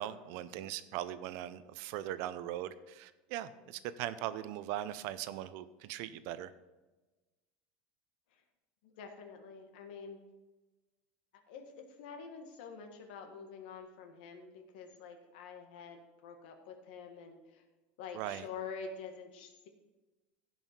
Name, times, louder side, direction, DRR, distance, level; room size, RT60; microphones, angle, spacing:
voice 1, 0.0-6.5 18.1-18.5, right 12 dB, 60° right, 13 dB, 0.6 m, -40 dB
voice 2, 8.8-10.2 11.5-17.6 18.0-19.7, left 5 dB, 80° left, 4 dB, 1.6 m, -47 dB
16.5 x 5.6 x 4.5 m, 1.2 s
supercardioid pair, 155°, 5 cm